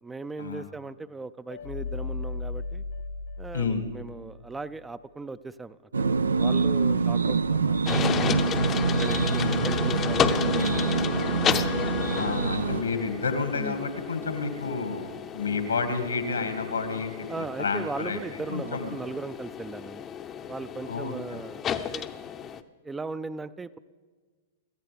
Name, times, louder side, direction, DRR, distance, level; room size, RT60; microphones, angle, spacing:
voice 1, 0.0-2.8 3.4-8.3 9.0-11.1 17.3-20.0 20.5-22.1 22.8-23.8, right 3 dB, 10° right, 14 dB, 0.4 m, -38 dB
sound 1, 1.5-4.7, left 3 dB, 65° left, 0.9 m, -36 dB
voice 2, 3.5-3.8 9.4-9.5 12.1-18.2 18.5-19.0 20.9-21.4, left 4 dB, 85° left, 7 dB, 2.0 m, -30 dB
sound 2, 5.9-12.8, right 5 dB, 85° right, 0.4 m, -25 dB
sound 3, 7.9-22.6, left 8 dB, 25° left, 0.6 m, -32 dB
26.0 x 13.5 x 3.4 m, 1.5 s
hypercardioid pair, 110°, 0 cm